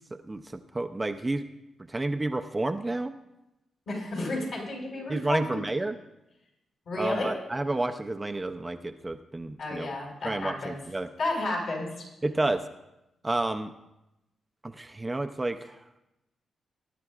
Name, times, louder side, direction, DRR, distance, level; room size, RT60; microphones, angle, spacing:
voice 1, 0.1-1.4 1.9-3.1 5.1-6.0 7.0-9.9 10.2-11.1 12.2-12.6 13.2-13.7 14.6-15.8, right 2 dB, 15° right, 6 dB, 0.5 m, -30 dB
voice 2, 3.9-5.6 6.8-7.3 9.6-10.8 11.2-12.0, left 2 dB, 65° left, -3 dB, 5.2 m, -32 dB
20.0 x 11.0 x 2.4 m, 0.93 s
cardioid pair, 115°, 0 cm